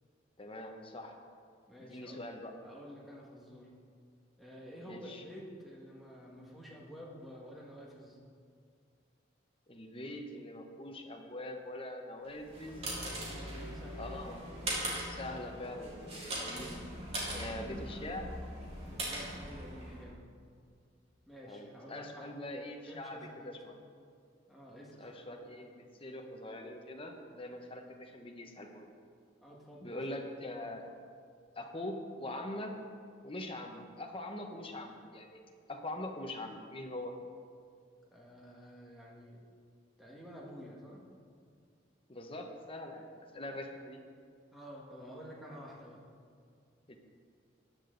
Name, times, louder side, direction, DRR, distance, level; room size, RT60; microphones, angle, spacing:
voice 1, 0.4-1.2 1.8-2.5 4.8-5.2 9.7-13.0 13.9-14.4 15.1-16.8 17.3-18.3 21.4-23.8 25.0-28.9 29.8-30.9 31.6-32.7 33.2-35.4 35.7-37.1 42.1-44.0 46.9-47.0, left 1 dB, 25° left, 3 dB, 0.9 m, -43 dB
voice 2, 1.7-2.2 2.6-3.7 4.4-8.2 13.2-14.0 18.8-20.2 21.3-22.3 22.9-23.5 24.5-25.1 29.4-30.2 38.1-39.4 40.0-41.0 43.4-43.6 44.5-46.0, equal, ahead, -4 dB, 1.7 m, -50 dB
sound 1, 12.3-20.1, right 1 dB, 30° right, 2.8 m, -40 dB
13.5 x 9.9 x 3.9 m, 2.2 s
head